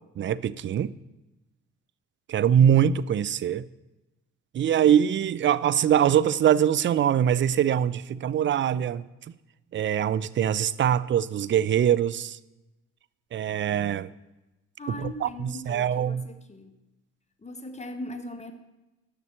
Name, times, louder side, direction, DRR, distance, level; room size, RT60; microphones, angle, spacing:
voice 1, 0.2-0.9 2.3-3.6 4.5-9.0 9.7-12.4 13.3-14.1 14.9-16.2, right 9 dB, 30° right, 17 dB, 0.4 m, -23 dB
voice 2, 14.8-16.8 17.4-18.5, left 1 dB, 15° left, 6 dB, 1.3 m, -39 dB
6.6 x 6.6 x 7.5 m, 1.0 s
hypercardioid pair, 50°, 38 cm